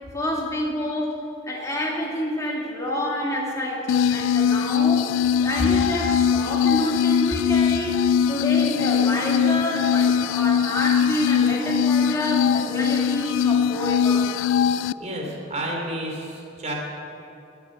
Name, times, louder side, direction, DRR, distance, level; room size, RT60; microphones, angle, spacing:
voice 1, 0.1-5.1 5.4-8.0 8.3-14.3, left 1 dB, 15° left, -3 dB, 2.7 m, -28 dB
sound 1, 3.9-14.9, left 8 dB, 75° left, 0.3 m, -21 dB
voice 2, 15.0-16.7, right 1 dB, 35° right, 0 dB, 3.3 m, -31 dB
21.0 x 8.1 x 7.9 m, 2.7 s
head